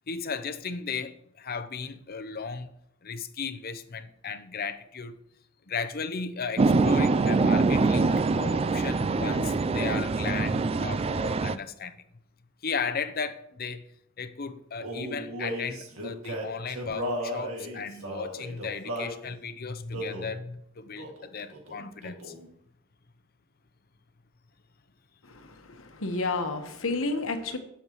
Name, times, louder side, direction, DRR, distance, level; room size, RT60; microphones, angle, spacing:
voice 1, 0.1-2.7 3.0-5.1 5.7-12.0 12.6-13.8 14.2-22.3, left 5 dB, 45° left, 0.7 m, -35 dB
sound 1, 6.6-11.6, right 3 dB, 30° right, 0.3 m, -24 dB
Male singing, 14.8-19.2 19.9-20.3 21.0-21.3 21.5-22.5, equal, 85° right, 2.1 m, -35 dB
voice 2, 25.3-27.6, left 3 dB, 75° left, 1.2 m, -31 dB
17.5 x 7.2 x 3.1 m
head